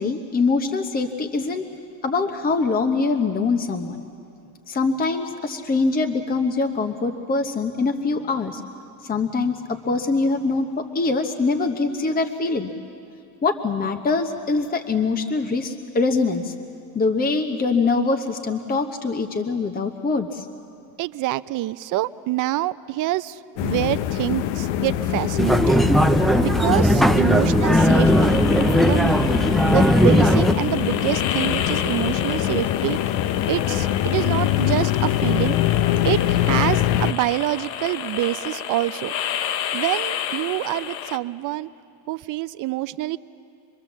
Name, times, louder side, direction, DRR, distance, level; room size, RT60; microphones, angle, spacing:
voice 1, 0.0-1.7 2.0-4.0 4.7-8.6 9.0-12.7 13.4-16.5 16.9-20.5, left 3 dB, 20° left, 5 dB, 1.1 m, -23 dB
voice 2, 21.0-25.8 26.4-28.4 28.8-29.2 29.7-33.0 33.5-35.6 36.0-39.1 39.7-41.7 42.1-43.2, right 16 dB, 40° right, 15 dB, 0.5 m, -26 dB
sound 1, 23.6-37.1, left 12 dB, 55° left, 0.8 m, -23 dB
sound 2, 25.4-30.5, equal, ahead, 0.5 m, -18 dB
sound 3, 27.8-41.2, left 10 dB, 85° left, 1.0 m, -31 dB
25.5 x 21.5 x 7.3 m, 2.4 s
supercardioid pair, 110°, 50 cm